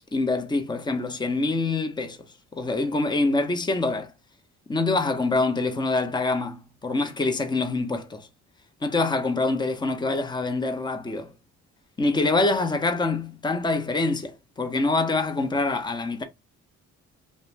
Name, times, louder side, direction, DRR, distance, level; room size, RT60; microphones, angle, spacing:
voice 1, 0.1-2.2 2.5-4.1 4.7-8.3 8.8-11.3 12.0-16.2, left 3 dB, 15° left, 0.5 m, -25 dB
2.5 x 2.1 x 3.1 m
cardioid pair, 90°, 30 cm